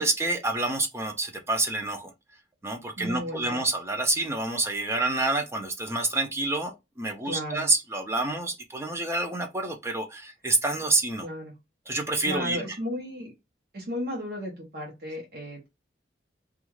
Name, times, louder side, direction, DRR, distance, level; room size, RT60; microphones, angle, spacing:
voice 1, 0.0-2.1 2.6-11.3 11.9-12.8, right 2 dB, 15° right, 0.4 m, -28 dB
voice 2, 3.0-3.6 7.2-7.7 11.2-11.5 12.2-13.3 13.7-15.7, equal, 55° right, 0.8 m, -34 dB
2.3 x 2.2 x 3.1 m
head